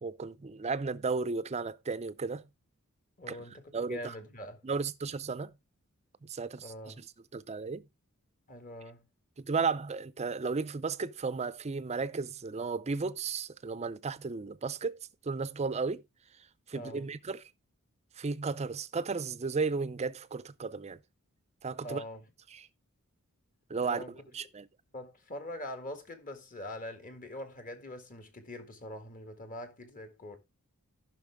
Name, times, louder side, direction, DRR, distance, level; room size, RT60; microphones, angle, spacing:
voice 1, 0.0-2.5 3.3-3.4 3.7-4.1 4.6-5.5 6.2-7.0 7.3-7.8 9.4-16.0 16.7-17.5 18.2-21.0 21.6-22.0 22.5-22.7 23.7-24.7, right 4 dB, 30° right, 0.5 m, -34 dB
voice 2, 3.2-4.6 6.6-7.0 8.5-9.1 16.7-17.1 21.8-22.2 23.8-24.1 24.9-30.4, left 1 dB, 40° left, 1.8 m, -43 dB
14.5 x 5.9 x 3.5 m
head